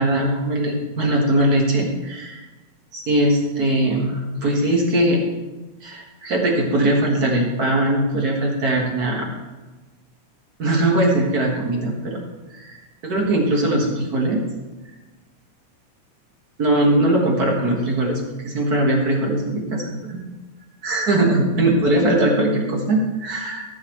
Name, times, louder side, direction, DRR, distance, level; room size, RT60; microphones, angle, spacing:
voice 1, 0.0-2.4 2.9-5.2 5.8-9.4 10.6-12.2 12.5-12.8 13.0-14.4 16.6-20.2 20.8-23.6, right 1 dB, 40° right, 0 dB, 1.4 m, -20 dB
14.5 x 8.2 x 3.1 m, 1.2 s
omnidirectional pair, 3.7 m